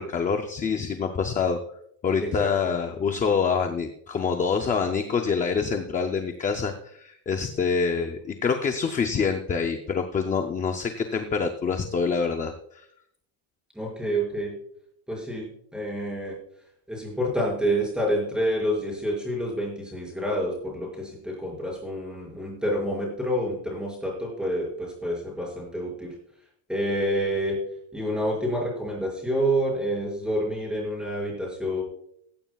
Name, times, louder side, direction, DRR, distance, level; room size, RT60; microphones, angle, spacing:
voice 1, 0.0-1.6 2.0-12.8, left 5 dB, 15° left, 5 dB, 0.4 m, -26 dB
voice 2, 2.2-2.7 13.7-14.5 15.1-15.4 15.7-16.4 16.9-26.1 26.7-27.6 27.9-31.8, equal, ahead, -4 dB, 5.4 m, -28 dB
16.0 x 15.0 x 2.3 m, 0.70 s
cardioid pair, 180°, 49 cm